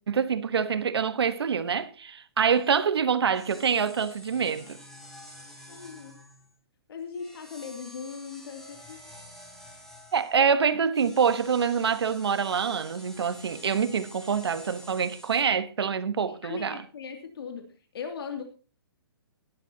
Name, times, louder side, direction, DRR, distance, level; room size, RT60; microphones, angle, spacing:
voice 1, 0.1-4.8 10.1-16.8, right 6 dB, 75° right, 1.3 m, -26 dB
sound 1, 2.5-2.8 3.3-6.5 7.1-10.4 10.9-15.4, equal, 5° left, 4.0 m, -49 dB
voice 2, 5.7-6.2 6.9-9.0 16.3-18.4, left 6 dB, 65° left, 2.6 m, -39 dB
19.0 x 11.5 x 2.8 m
hypercardioid pair, 140°, 13 cm